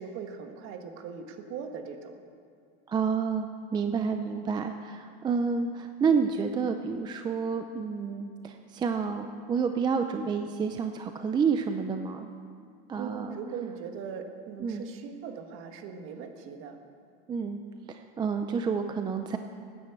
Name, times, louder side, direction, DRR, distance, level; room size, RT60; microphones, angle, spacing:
voice 1, 0.0-2.2 13.0-16.8, right 6 dB, 45° right, 5 dB, 1.6 m, -40 dB
voice 2, 2.9-12.3 12.9-13.4 14.6-14.8 17.3-17.6 17.9-19.4, right 5 dB, 15° right, 6 dB, 0.4 m, -29 dB
13.5 x 9.7 x 8.2 m, 2.3 s
supercardioid pair, 140°, 30 cm